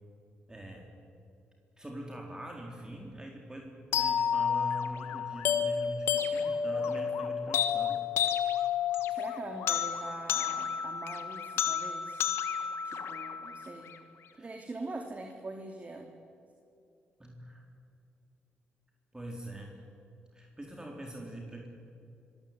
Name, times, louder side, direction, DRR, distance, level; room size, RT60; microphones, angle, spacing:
voice 1, 0.5-0.9 1.8-8.0 14.4-14.5 17.2-17.6 19.1-19.7 20.3-21.7, equal, 15° right, 0 dB, 4.1 m, -43 dB
sound 1, 3.9-13.9, left 8 dB, 80° left, 1.6 m, -31 dB
voice 2, 9.1-12.2 12.8-13.9 14.3-16.1, right 2 dB, 35° right, 3 dB, 2.8 m, -43 dB
25.5 x 16.0 x 9.5 m, 2.6 s
supercardioid pair, 55°, 4 cm